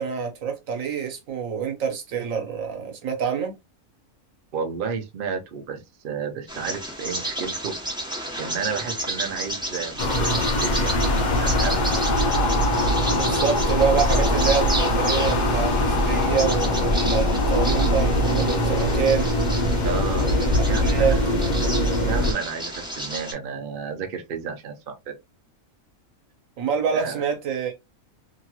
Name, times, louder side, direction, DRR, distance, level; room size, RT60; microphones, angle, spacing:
voice 1, 0.0-3.5 13.1-19.3 20.2-21.2 26.6-27.7, right 7 dB, 70° right, 1.2 m, -26 dB
voice 2, 4.5-7.7 8.4-10.3 10.6-11.9 19.8-20.3 20.6-21.3 22.0-25.1 26.9-27.2, right 6 dB, 50° right, 0.7 m, -32 dB
Bird vocalization bird call bird song, 6.5-23.3, right 1 dB, 5° right, 0.7 m, -32 dB
sound 1, 10.0-22.3, left 1 dB, 50° left, 0.5 m, -22 dB
sound 2, 10.9-20.0, left 3 dB, 70° left, 1.0 m, -30 dB
2.9 x 2.8 x 2.3 m
omnidirectional pair, 1.5 m